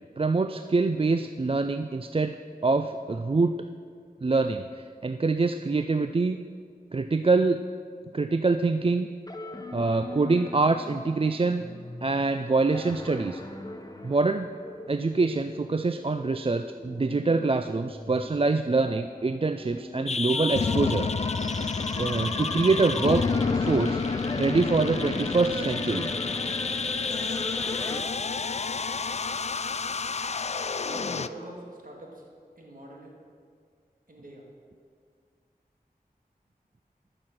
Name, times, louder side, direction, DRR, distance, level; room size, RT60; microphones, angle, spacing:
voice 1, 0.2-2.4 2.6-3.5 4.2-6.4 6.9-7.6 8.1-9.1 9.7-11.6 12.0-13.4 14.0-14.5 14.9-21.1 21.9-23.2 23.5-24.0 24.4-26.1, right 3 dB, 35° right, 9 dB, 0.4 m, -25 dB
sound 1, 9.3-28.0, left 1 dB, 25° left, 1.0 m, -39 dB
sound 2, 20.1-31.3, left 4 dB, 45° left, 0.4 m, -29 dB
voice 2, 30.8-32.2 32.6-33.1 34.1-34.4, right 1 dB, 60° right, -2 dB, 2.4 m, -43 dB
13.0 x 6.7 x 6.1 m, 2.1 s
wide cardioid pair, 40°, 16 cm